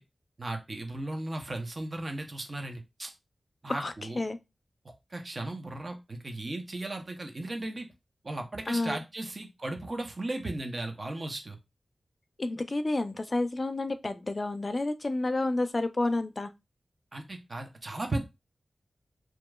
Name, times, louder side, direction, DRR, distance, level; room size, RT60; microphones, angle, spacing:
voice 1, 0.4-3.1 3.6-4.2 5.1-7.9 8.2-11.6 17.1-18.2, right 2 dB, 50° right, 0.7 m, -36 dB
voice 2, 3.7-4.4 8.7-9.0 12.4-16.5, left 2 dB, 45° left, 0.4 m, -30 dB
2.9 x 2.4 x 2.3 m
cardioid pair, 45°, 0 cm